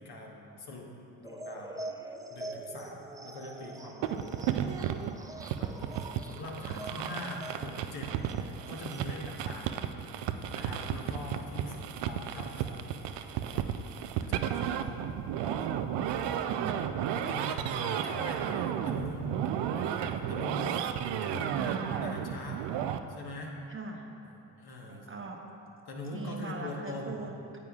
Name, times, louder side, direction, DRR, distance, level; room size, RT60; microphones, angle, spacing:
voice 1, 0.0-4.5 5.5-9.9 10.5-12.8 13.5-13.7 14.0-15.0 15.4-15.7 17.1-19.3 19.8-20.8 21.2-22.6 23.1-23.5 24.2-25.1 25.9-27.2, left 1 dB, 55° left, -1 dB, 1.4 m, -43 dB
sound 1, 1.2-9.3, right 2 dB, 10° right, 0.5 m, -45 dB
sound 2, 4.0-23.0, right 9 dB, 65° right, 0.5 m, -33 dB
voice 2, 6.1-7.1 11.6-11.8 16.5-16.8 21.3-22.3 23.7-24.0 24.8-25.4 26.1-27.6, right 3 dB, 25° right, 1 dB, 0.9 m, -42 dB
sound 3, 10.3-16.4, left 2 dB, 35° left, 1.3 m, -53 dB
9.4 x 7.9 x 2.4 m, 2.8 s
hypercardioid pair, 55°, 46 cm